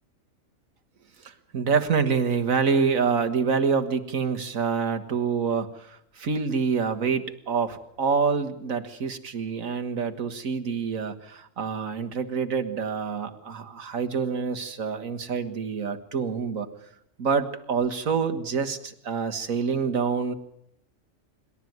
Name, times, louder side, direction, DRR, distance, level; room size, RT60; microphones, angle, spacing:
voice 1, 1.2-16.7 17.2-20.3, right 5 dB, 85° right, 7 dB, 1.9 m, -27 dB
26.5 x 12.5 x 9.4 m, 0.75 s
omnidirectional pair, 1.4 m